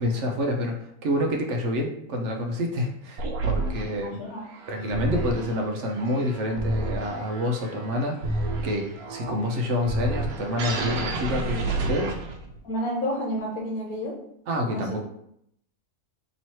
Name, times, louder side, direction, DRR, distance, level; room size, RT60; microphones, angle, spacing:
voice 1, 0.0-4.2 4.7-12.2 14.5-15.0, left 1 dB, 60° right, 2 dB, 0.9 m, -28 dB
sound 1, 3.2-12.6, right 2 dB, 80° right, 1.1 m, -30 dB
voice 2, 4.1-4.4 12.6-14.1 14.7-14.9, equal, 75° left, -2 dB, 1.2 m, -30 dB
3.1 x 3.0 x 4.2 m, 0.72 s
omnidirectional pair, 1.5 m